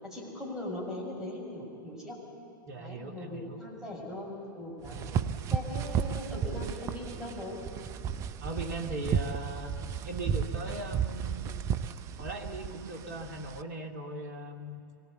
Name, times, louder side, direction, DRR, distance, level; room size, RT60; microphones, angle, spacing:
voice 1, 0.0-2.2 2.8-5.0 5.5-7.6, left 1 dB, 5° right, -3 dB, 7.0 m, -40 dB
voice 2, 2.7-3.6 4.9-5.2 5.7-5.9 8.4-9.7 10.0-11.6 12.2-14.8, right 2 dB, 50° right, 4 dB, 2.3 m, -39 dB
sound 1, 4.8-13.6, right 7 dB, 25° right, 0.6 m, -34 dB
24.5 x 19.0 x 8.2 m, 2.7 s
figure-of-eight pair, 105°, 12 cm